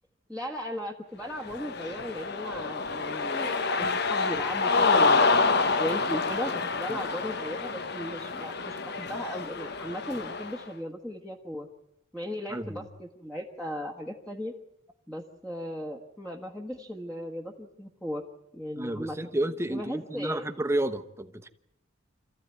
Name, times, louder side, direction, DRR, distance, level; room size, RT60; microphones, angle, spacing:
voice 1, 0.3-5.5 5.8-11.7 12.1-14.5 15.1-18.2 18.5-19.2 19.7-20.4, equal, 5° left, -2 dB, 1.4 m, -37 dB
Cheering, 1.4-10.6, left 4 dB, 55° left, 1.0 m, -27 dB
voice 2, 12.5-12.8 18.8-21.5, right 1 dB, 15° right, 8 dB, 1.1 m, -31 dB
26.5 x 14.5 x 9.5 m, 0.84 s
head